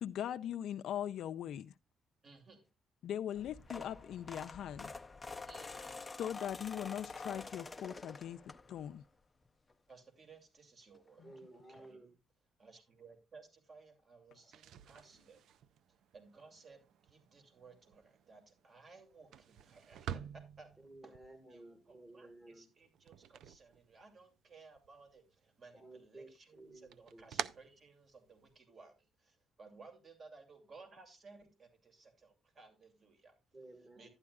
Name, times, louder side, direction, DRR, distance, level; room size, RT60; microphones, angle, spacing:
voice 1, 0.0-1.7 3.0-4.9 6.2-8.4 8.7-9.0 11.2-11.3, left 10 dB, 75° left, 0.4 m, -40 dB
voice 2, 2.2-2.7 5.5-6.1 9.9-11.3 11.7-12.0 12.6-15.4 16.1-21.1 21.5-33.4 34.0-34.1, right 4 dB, 45° right, 2.6 m, -59 dB
sound 1, 3.3-9.0 9.4-9.7 10.9-11.0 11.3-11.4 11.7-11.9, left 3 dB, 20° left, 0.6 m, -47 dB
voice 3, 11.2-12.1 14.3-14.5 15.1-15.2 20.8-22.7 25.7-27.2 33.5-34.1, right 2 dB, 25° right, 2.1 m, -55 dB
sound 2, 14.4-24.4 24.7-25.6 25.9-28.6, right 9 dB, 75° right, 0.4 m, -49 dB
11.5 x 9.7 x 2.4 m
cardioid pair, 90°, 0 cm